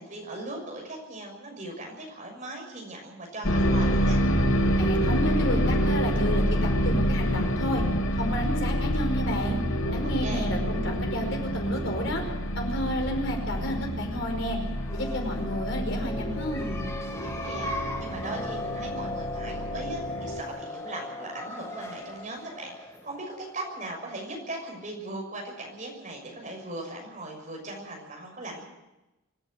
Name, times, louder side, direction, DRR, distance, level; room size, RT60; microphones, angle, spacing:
voice 1, 0.0-4.2 10.2-10.5 17.2-28.6, right 2 dB, 35° right, 1 dB, 6.3 m, -39 dB
sound 1, 3.4-20.4, equal, 75° left, 2.9 m, -27 dB
voice 2, 4.8-7.8 8.1-9.6 9.9-12.2 12.5-14.6 14.9-16.9, left 1 dB, 60° left, 2 dB, 5.1 m, -31 dB
sound 2, 14.7-24.2, left 2 dB, 15° left, 1.7 m, -38 dB
25.0 x 11.5 x 9.5 m, 0.99 s
head